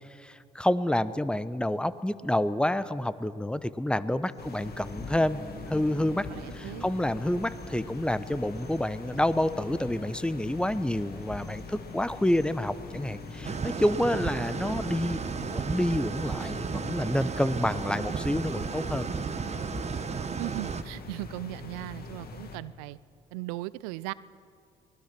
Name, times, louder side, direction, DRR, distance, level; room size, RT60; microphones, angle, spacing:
voice 1, 0.2-5.4 5.7-6.3 6.5-19.1, left 1 dB, 5° left, 15 dB, 1.0 m, -28 dB
sound 1, 4.2-13.7, right 2 dB, 15° right, 3.2 m, -50 dB
sound 2, 4.4-22.6, left 3 dB, 50° left, 2.3 m, -43 dB
voice 2, 6.3-6.9 20.4-23.0 23.3-24.1, right 19 dB, 80° right, 19 dB, 0.6 m, -37 dB
sound 3, 13.4-20.8, right 6 dB, 35° right, 1.1 m, -33 dB
24.5 x 20.5 x 6.2 m, 2.3 s
hypercardioid pair, 50°, 20 cm